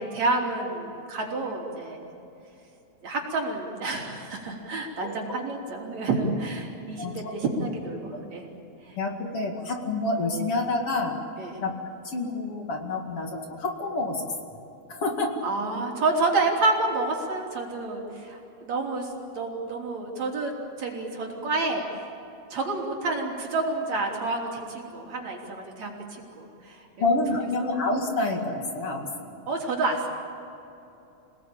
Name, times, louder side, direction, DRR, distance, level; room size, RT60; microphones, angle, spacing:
voice 1, 0.0-2.1 3.0-8.5 8.8-9.0 11.4-11.6 15.4-20.5 20.8-22.1 22.5-27.1 29.5-30.1, right 3 dB, 65° right, 0 dB, 4.6 m, -29 dB
voice 2, 9.0-11.2 11.6-11.7 12.0-14.2 14.9-15.4 27.0-29.3, left 2 dB, 50° left, 2 dB, 3.0 m, -28 dB
28.0 x 19.0 x 8.7 m, 2.9 s
omnidirectional pair, 3.4 m